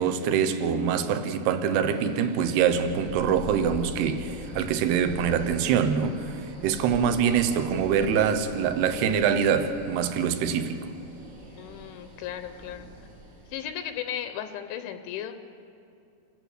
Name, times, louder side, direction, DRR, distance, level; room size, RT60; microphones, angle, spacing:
voice 1, 0.0-10.9, right 7 dB, 70° right, 2.8 m, -24 dB
sound 1, 2.0-13.7, right 1 dB, 30° right, 1.5 m, -43 dB
voice 2, 11.6-12.9 13.5-15.3, left 10 dB, 80° left, 3.1 m, -36 dB
28.5 x 14.0 x 6.6 m
omnidirectional pair, 5.5 m